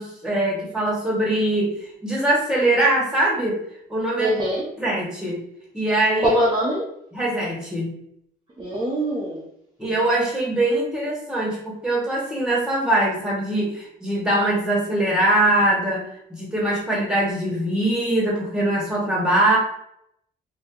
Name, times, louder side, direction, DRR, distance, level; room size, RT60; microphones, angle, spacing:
voice 1, 0.0-1.7 2.0-3.6 3.9-4.3 4.8-5.4 5.7-6.3 7.1-7.9 9.8-16.0 16.3-19.6, right 1 dB, 5° right, -4 dB, 1.3 m, -22 dB
voice 2, 4.2-4.7 6.2-6.9 8.6-9.5, right 1 dB, 25° right, -4 dB, 0.6 m, -22 dB
2.7 x 2.1 x 3.6 m, 0.74 s
cardioid pair, 90°, 20 cm